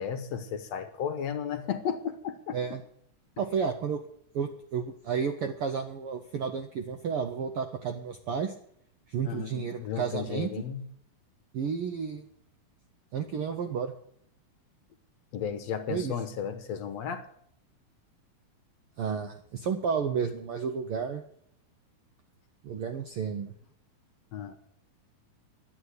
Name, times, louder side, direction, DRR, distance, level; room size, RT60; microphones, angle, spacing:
voice 1, 0.0-2.6 9.3-10.9 15.3-17.2 24.3-24.6, left 8 dB, 65° left, 8 dB, 1.9 m, -34 dB
voice 2, 3.4-4.0 4.3-8.5 9.1-10.5 11.5-12.2 13.1-13.9 15.9-16.1 19.0-21.2 22.6-23.5, right 6 dB, 70° right, 7 dB, 1.3 m, -31 dB
11.5 x 9.2 x 8.1 m, 0.67 s
omnidirectional pair, 3.5 m